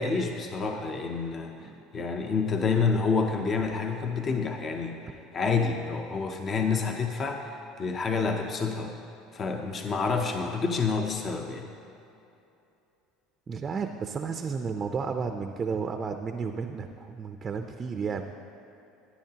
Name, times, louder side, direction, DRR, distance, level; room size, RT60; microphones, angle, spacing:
voice 1, 0.0-5.0 5.3-8.9 9.3-11.7, left 4 dB, 35° left, 4 dB, 0.7 m, -28 dB
voice 2, 13.5-18.3, right 5 dB, 30° right, 6 dB, 0.5 m, -32 dB
14.0 x 9.6 x 2.8 m, 2.8 s
supercardioid pair, 105°, 0 cm